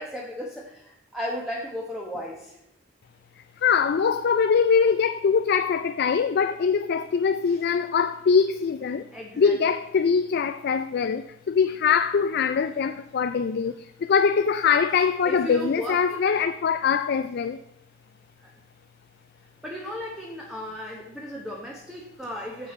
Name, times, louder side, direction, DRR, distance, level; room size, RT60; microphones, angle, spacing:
voice 1, 0.0-2.6 7.5-7.6 9.1-9.7 15.2-16.2 18.4-18.5 19.6-22.7, left 1 dB, 5° right, 1.0 m, -35 dB
voice 2, 3.6-9.1 9.4-17.6, left 6 dB, 60° left, 0.4 m, -23 dB
9.7 x 6.9 x 4.2 m
head